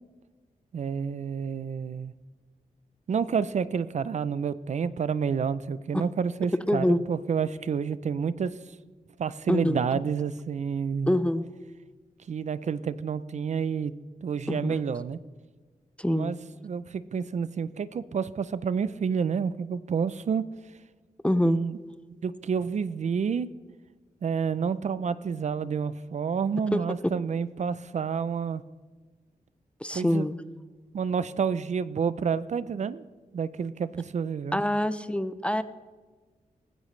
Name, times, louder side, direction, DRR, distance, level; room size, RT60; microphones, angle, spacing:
voice 1, 0.7-2.1 3.1-8.5 9.2-11.2 12.3-13.9 14.2-15.2 16.1-16.4 16.6-20.4 21.4-21.8 22.2-23.5 24.2-28.6 29.9-30.3 30.9-33.0 33.3-34.6, right 6 dB, 55° right, 16 dB, 0.5 m, -29 dB
voice 2, 6.7-7.0 9.5-10.0 11.1-11.4 14.5-14.8 16.0-16.3 21.2-21.6 26.7-27.1 29.8-30.4 34.5-35.6, left 1 dB, 10° left, 13 dB, 0.4 m, -25 dB
18.5 x 15.0 x 3.2 m, 1.4 s
wide cardioid pair, 170°, 15 cm